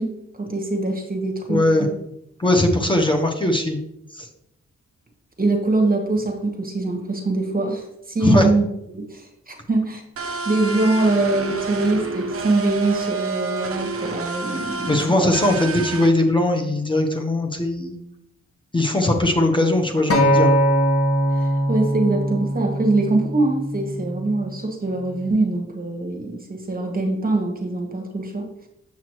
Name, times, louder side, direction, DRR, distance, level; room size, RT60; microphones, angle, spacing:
voice 1, 0.0-1.9 5.4-10.0 10.4-15.3 21.3-28.4, right 2 dB, 30° right, 2 dB, 1.3 m, -23 dB
voice 2, 1.5-1.9 2.4-3.8 4.1-4.3 8.2-8.5 14.9-17.9 18.7-20.5, left 1 dB, 15° left, 2 dB, 1.1 m, -20 dB
sound 1, 10.2-16.1, right 4 dB, 50° right, 0.9 m, -29 dB
Acoustic guitar, 20.1-24.4 25.2-25.3, equal, 50° left, 1.5 m, -21 dB
7.3 x 5.9 x 3.1 m, 0.80 s
cardioid pair, 60°, 29 cm